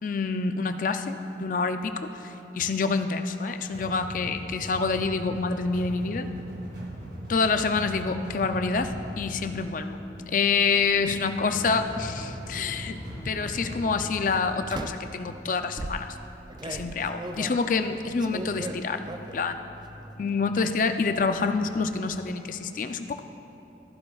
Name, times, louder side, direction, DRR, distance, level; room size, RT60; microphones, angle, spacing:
voice 1, 0.0-6.3 7.3-10.0 10.3-16.2 16.6-19.0 19.3-19.7 20.2-23.2, left 4 dB, 45° left, 8 dB, 0.4 m, -27 dB
sound 1, 3.7-15.6, equal, 60° right, 2.2 m, -40 dB
sound 2, 7.6-22.1, left 1 dB, 20° left, 0.9 m, -49 dB
sound 3, 8.4-8.9 10.7-10.9 11.7-12.5 13.3-13.6 14.7-15.2 15.8-19.5 19.9-20.4 20.7-21.3, right 2 dB, 25° right, 0.3 m, -39 dB
14.0 x 11.5 x 2.4 m, 2.9 s
head